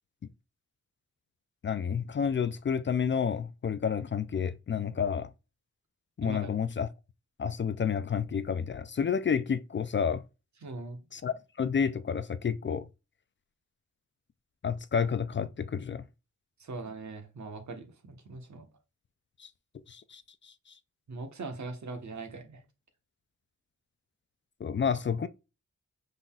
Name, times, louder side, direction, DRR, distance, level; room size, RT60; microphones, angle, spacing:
voice 1, 1.6-5.3 6.2-6.9 7.4-10.2 11.1-12.8 14.6-16.0 19.4-19.5 19.9-20.5 24.6-25.3, left 7 dB, 40° left, 0.4 m, -30 dB
voice 2, 6.2-6.5 10.6-11.0 16.6-18.7 21.1-22.6, right 3 dB, 70° right, 1.3 m, -41 dB
5.7 x 3.9 x 2.4 m
wide cardioid pair, 115°, 30 cm